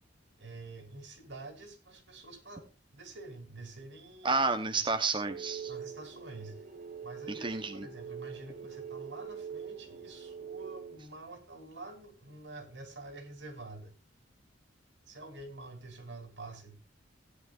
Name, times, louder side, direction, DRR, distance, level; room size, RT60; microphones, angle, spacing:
voice 1, 0.4-4.4 5.7-6.6 7.0-13.9 15.1-16.8, right 2 dB, 75° right, 3.2 m, -47 dB
voice 2, 4.2-5.7 7.3-7.9, right 3 dB, 25° right, 0.8 m, -30 dB
sound 1, 5.2-11.0, right 7 dB, 45° right, 1.8 m, -44 dB
17.0 x 10.0 x 2.4 m
head